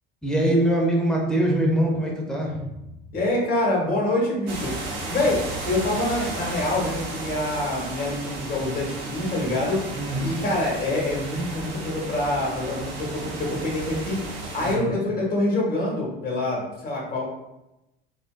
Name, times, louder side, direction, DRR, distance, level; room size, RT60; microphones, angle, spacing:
voice 1, 0.2-2.7 9.9-10.3 14.6-15.0, right 1 dB, ahead, -2 dB, 0.8 m, -23 dB
voice 2, 3.1-4.7 5.1-5.4 5.7-9.8 10.2-17.2, left 2 dB, 30° left, -3 dB, 1.4 m, -26 dB
sound 1, 4.5-14.8, right 2 dB, 70° right, 0.8 m, -34 dB
3.7 x 2.5 x 2.2 m, 0.92 s
hypercardioid pair, 80°, 29 cm